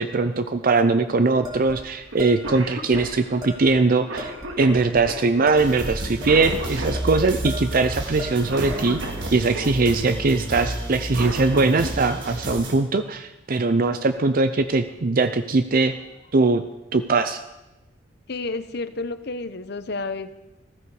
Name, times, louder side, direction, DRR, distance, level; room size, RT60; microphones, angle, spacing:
voice 1, 0.0-9.0 9.3-16.0 16.3-16.6 16.9-17.4, right 3 dB, 50° right, 10 dB, 0.6 m, -21 dB
sound 1, 1.4-2.6 2.9-3.0 3.4-3.8 4.2-5.1 5.5-7.1 7.4-7.8 8.2-9.1, left 1 dB, 20° right, 2.6 m, -37 dB
Cough, 2.1-2.2 2.4-9.7 10.9-11.9 13.6-13.7 14.7-15.0 15.4-15.5 15.9-16.4, right 2 dB, 90° right, 2.2 m, -35 dB
sound 2, 5.6-12.7, right 1 dB, 70° right, 3.9 m, -31 dB
voice 2, 18.3-20.3, left 3 dB, 60° left, 12 dB, 0.8 m, -30 dB
15.5 x 14.5 x 4.8 m, 1.0 s
head